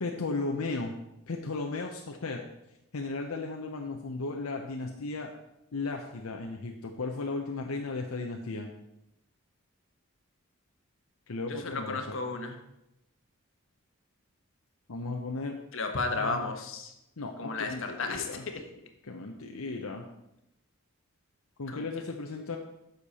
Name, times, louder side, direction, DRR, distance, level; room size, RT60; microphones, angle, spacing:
voice 1, 0.0-0.9 1.3-2.4 2.9-5.3 5.7-8.7 11.3-12.2 14.9-15.6 16.1-16.5 17.2-18.4 19.0-20.1 21.6-22.6, left 3 dB, 80° left, 2 dB, 0.8 m, -35 dB
voice 2, 11.5-12.6 15.7-16.9 17.4-18.6 21.7-21.8, left 3 dB, 65° left, 5 dB, 1.2 m, -33 dB
10.0 x 6.7 x 4.2 m, 0.85 s
head